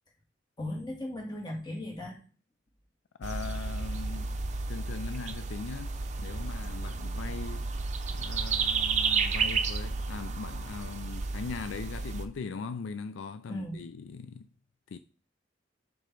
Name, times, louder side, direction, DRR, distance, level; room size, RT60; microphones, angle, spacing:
voice 1, 0.6-2.2 13.5-13.9, left 1 dB, 25° left, 1.8 m, -37 dB
voice 2, 3.2-4.3 4.7-7.7 8.1-14.5 14.9-15.0, left 5 dB, 80° left, 0.4 m, -40 dB
sound 1, 3.2-12.3, right 4 dB, 40° right, 0.6 m, -32 dB
5.8 x 5.0 x 4.5 m
head